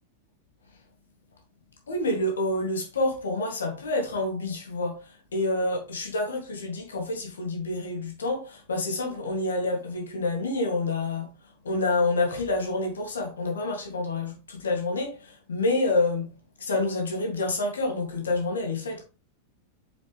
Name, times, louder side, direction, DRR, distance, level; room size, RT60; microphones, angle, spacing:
voice 1, 1.9-11.3 11.6-16.3 16.6-19.0, left 2 dB, 70° left, 2.8 m, -28 dB
7.2 x 6.7 x 3.4 m
figure-of-eight pair, 90°, 0 cm